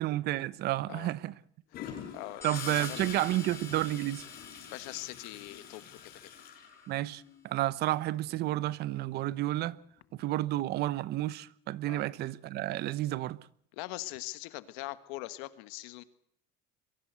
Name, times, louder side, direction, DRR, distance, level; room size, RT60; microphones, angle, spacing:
voice 1, 0.0-1.3 2.4-4.2 6.9-9.8 10.1-13.4, right 15 dB, 60° right, 0.9 m, -31 dB
voice 2, 1.7-3.1 4.7-6.3 11.9-12.0 13.7-16.0, left 19 dB, 85° left, 1.6 m, -42 dB
Gurgling / Toilet flush, 1.7-7.5 9.5-9.7, left 8 dB, 55° left, 6.2 m, -45 dB
sound 1, 2.4-6.7, left 4 dB, 15° left, 1.2 m, -49 dB
23.0 x 16.0 x 8.2 m
cardioid pair, 120°, 19 cm